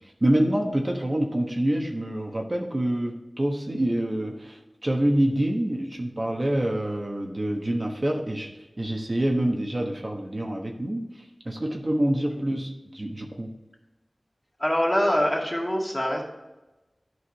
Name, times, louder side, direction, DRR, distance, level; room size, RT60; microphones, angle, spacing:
voice 1, 0.2-8.5 8.8-13.5, right 1 dB, 45° right, 1 dB, 1.2 m, -26 dB
voice 2, 14.6-16.2, equal, 20° left, -2 dB, 2.2 m, -24 dB
11.5 x 4.7 x 4.6 m, 1.0 s
wide cardioid pair, 50°, 0 cm